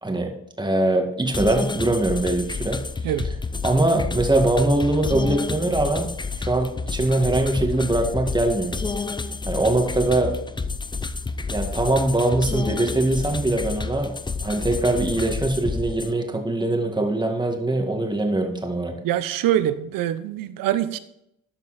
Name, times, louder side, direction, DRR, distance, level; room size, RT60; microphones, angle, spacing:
voice 1, 0.0-2.8 3.6-6.1 6.4-8.8 9.5-10.4 11.5-19.0, right 2 dB, 15° right, 3 dB, 2.0 m, -22 dB
sound 1, 1.3-16.1, left 4 dB, 15° left, 0.5 m, -30 dB
voice 2, 19.0-21.0, right 12 dB, 80° right, 13 dB, 0.7 m, -24 dB
13.0 x 5.4 x 4.2 m, 0.79 s
cardioid pair, 85°, 33 cm